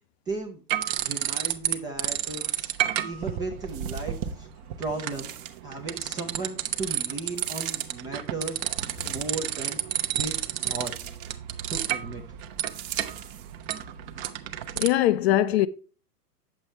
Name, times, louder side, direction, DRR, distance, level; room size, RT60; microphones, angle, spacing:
voice 1, 0.3-0.6 1.0-2.7 3.0-4.5 4.8-5.3 5.6-8.6 9.1-9.8 10.1-10.3 10.6-10.9 11.7-12.2, right 3 dB, 10° right, 0.4 m, -35 dB
sound 1, 0.7-1.7 2.0-14.9, right 11 dB, 35° right, 0.8 m, -31 dB
sound 2, 3.7-4.3 5.1-5.8 7.3-7.9 8.8-9.6 10.8-11.4 12.7-13.5 14.3-14.4, right 11 dB, 50° right, 1.3 m, -41 dB
voice 2, 14.8-15.7, left 13 dB, 40° left, 0.5 m, -21 dB
8.8 x 7.3 x 3.1 m
hypercardioid pair, 115°, 49 cm